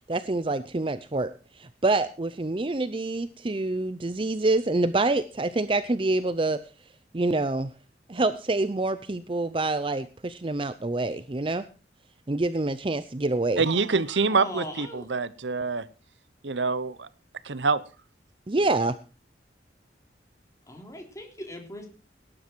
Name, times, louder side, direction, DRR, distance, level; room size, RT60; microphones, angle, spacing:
voice 1, 0.0-6.6 7.1-7.7 8.1-11.6 12.3-13.6 18.5-19.0, right 2 dB, 30° right, 0.6 m, -26 dB
voice 2, 13.6-15.9 16.4-17.1 17.4-17.8, right 4 dB, 90° right, 0.9 m, -25 dB
voice 3, 14.3-15.1 20.7-21.9, left 1 dB, 20° left, 3.5 m, -39 dB
18.5 x 10.5 x 4.6 m
head